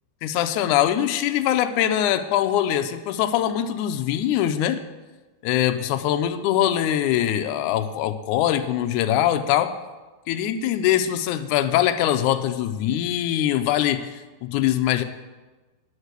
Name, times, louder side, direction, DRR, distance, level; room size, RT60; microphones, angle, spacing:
voice 1, 0.2-4.8 5.4-9.8 10.3-15.0, left 11 dB, 80° left, 9 dB, 1.8 m, -22 dB
9.7 x 6.5 x 8.1 m, 1.2 s
omnidirectional pair, 4.0 m